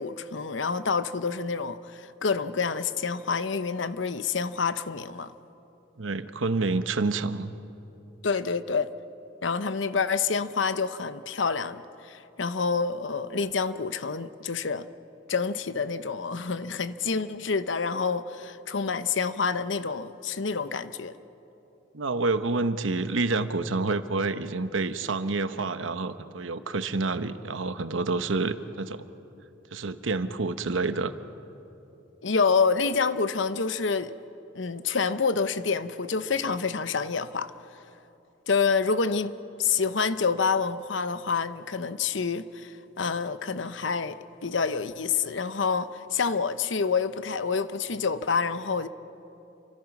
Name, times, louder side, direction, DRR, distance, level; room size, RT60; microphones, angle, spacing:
voice 1, 0.0-5.3 8.2-8.9 9.4-14.9 15.3-21.1 32.2-34.1 34.5-37.5 38.5-39.3 39.6-44.2 44.4-48.9, left 5 dB, 75° left, 0.8 m, -27 dB
voice 2, 6.0-7.5 21.9-29.1 29.7-31.1, right 3 dB, 85° right, 1.0 m, -28 dB
29.0 x 24.5 x 6.0 m
head